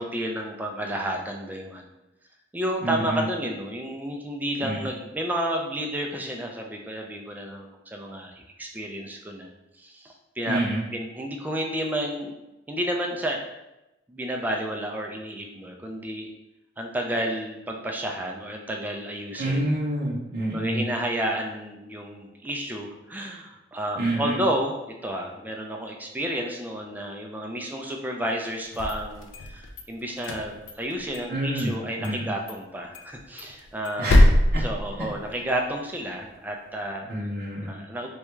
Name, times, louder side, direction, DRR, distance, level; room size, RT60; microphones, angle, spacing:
voice 1, 0.0-1.9 2.5-9.5 9.8-10.6 10.9-12.3 12.7-13.4 14.1-16.3 16.8-19.6 20.5-37.3 37.7-38.1, right 1 dB, 10° right, 1 dB, 0.3 m, -31 dB
voice 2, 2.8-3.2 4.6-4.9 10.5-10.8 19.4-20.8 24.0-24.4 31.3-31.7 32.0-32.3 34.0-34.2 34.5-34.6 37.1-37.8, right 1 dB, 55° right, -6 dB, 0.6 m, -27 dB
sound 1, 28.6-29.8 30.2-31.3 31.6-31.7 32.0-32.2 32.5-32.6 32.9-35.5, left 1 dB, 75° left, 0.4 m, -23 dB
3.5 x 2.2 x 3.0 m, 0.95 s
head